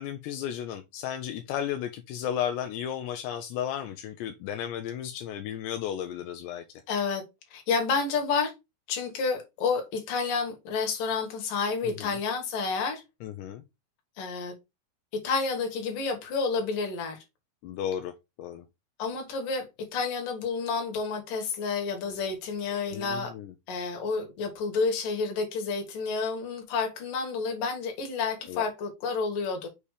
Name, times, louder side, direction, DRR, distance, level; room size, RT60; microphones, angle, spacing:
voice 1, 0.0-6.6 13.2-13.6 17.6-18.1 18.4-18.6 22.9-23.5 28.5-28.7, left 10 dB, 85° left, 2.7 m, -34 dB
voice 2, 6.9-7.2 7.5-8.5 8.9-13.0 14.2-14.5 15.2-17.2 19.0-23.3 23.7-29.7, left 4 dB, 60° left, 2.8 m, -30 dB
6.8 x 2.8 x 4.8 m
omnidirectional pair, 5.0 m